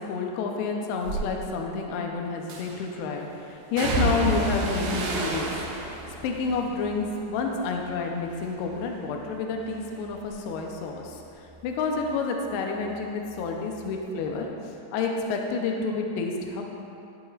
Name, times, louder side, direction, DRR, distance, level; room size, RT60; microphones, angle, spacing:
voice 1, 0.0-5.5 5.8-5.9 6.2-14.4 14.9-16.6, left 4 dB, 75° left, 2 dB, 2.5 m, -29 dB
sound 1, 1.0-1.3 2.5-3.0 3.8-8.0 8.3-8.9 9.3-12.6 12.9-14.0 14.3-14.4, right 1 dB, 70° right, 3.3 m, -32 dB
14.0 x 8.2 x 2.5 m, 2.7 s
omnidirectional pair, 5.4 m